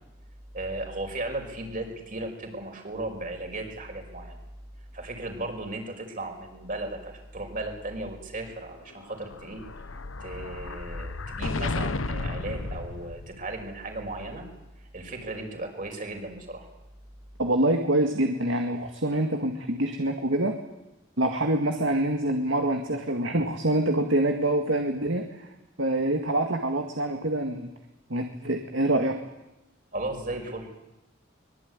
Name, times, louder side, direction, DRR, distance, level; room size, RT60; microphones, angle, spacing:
voice 1, 0.5-4.4 4.9-9.6 10.2-14.5 14.9-16.7 29.9-30.8, right 2 dB, 45° right, 3 dB, 5.7 m, -36 dB
Explosion, 9.0-13.6, left 3 dB, 85° left, 1.0 m, -33 dB
voice 2, 17.4-20.6 21.2-25.5 25.8-27.7 28.1-29.2, right 1 dB, 65° right, 4 dB, 2.1 m, -26 dB
24.0 x 22.0 x 9.8 m, 0.96 s
head